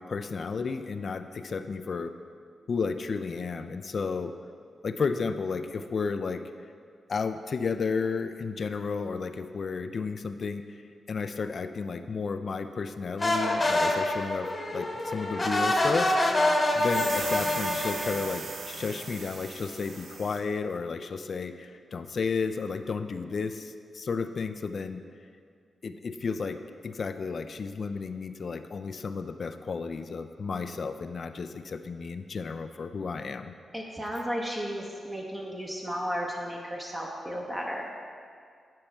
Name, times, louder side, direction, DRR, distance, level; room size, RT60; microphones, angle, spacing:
voice 1, 0.0-2.1 2.7-4.3 4.8-6.4 7.1-10.8 11.1-16.1 16.7-25.0 25.8-26.6 26.8-33.5, left 5 dB, 50° left, 9 dB, 0.3 m, -32 dB
sound 1, 13.2-18.2, left 1 dB, 25° left, 0.9 m, -26 dB
sound 2, 16.7-20.4, right 4 dB, 85° right, 0.8 m, -38 dB
voice 2, 33.7-37.9, equal, 15° right, -2 dB, 0.7 m, -34 dB
8.9 x 5.3 x 4.4 m, 2.2 s
cardioid pair, 100°, 0 cm